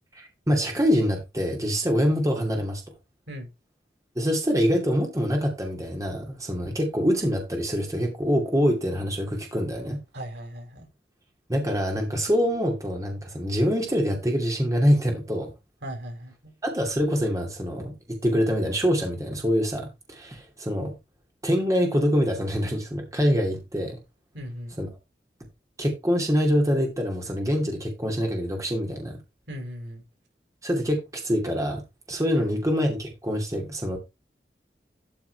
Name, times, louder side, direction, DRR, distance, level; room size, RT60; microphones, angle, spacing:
voice 1, 0.1-2.8 4.2-10.0 11.5-15.5 16.6-17.9 18.2-20.9 21.4-24.0 24.8-24.9 25.8-29.2 30.6-31.8 32.1-34.0, equal, 20° right, 2.5 m, -25 dB
voice 2, 10.1-10.9 15.8-16.5 24.3-24.7 29.5-30.0 32.3-32.6, equal, 85° right, 4.9 m, -38 dB
12.5 x 4.5 x 4.6 m
head